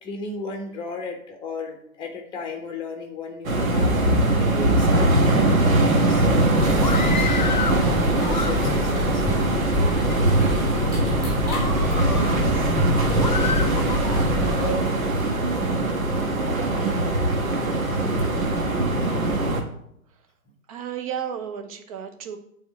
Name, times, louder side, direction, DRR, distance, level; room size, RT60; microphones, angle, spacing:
voice 1, 0.0-3.9 4.4-9.7 15.0-15.4, left 4 dB, 10° left, 4 dB, 1.1 m, -35 dB
sound 1, 3.4-19.6, right 2 dB, 60° right, 1.6 m, -21 dB
sound 2, 6.6-14.7, left 1 dB, 5° right, 2.4 m, -28 dB
Screaming, 6.7-7.8 8.2-9.0 9.6-10.2 10.7-10.9 11.4-12.4 13.2-14.2, left 5 dB, 30° left, 0.4 m, -30 dB
voice 2, 12.0-12.7 16.2-16.7 20.7-22.4, right 8 dB, 25° right, 6 dB, 0.8 m, -34 dB
8.4 x 4.3 x 6.1 m, 0.74 s
figure-of-eight pair, 120°, 46 cm